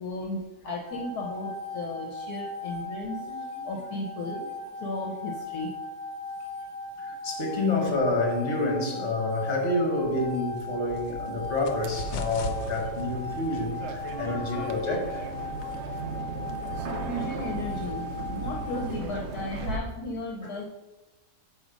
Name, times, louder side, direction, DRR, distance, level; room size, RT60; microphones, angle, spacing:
voice 1, 0.0-5.7 14.0-14.7 17.0-20.6, left 2 dB, 70° left, 1.4 m, -35 dB
sound 1, 0.8-18.9, left 2 dB, 15° right, 1.9 m, -38 dB
voice 2, 7.0-15.3, left 2 dB, 45° left, 1.7 m, -28 dB
sound 2, 10.0-16.2, left 3 dB, 85° left, 1.2 m, -41 dB
sound 3, 11.8-19.8, right 3 dB, 55° right, 0.8 m, -36 dB
7.5 x 4.9 x 5.1 m
omnidirectional pair, 1.7 m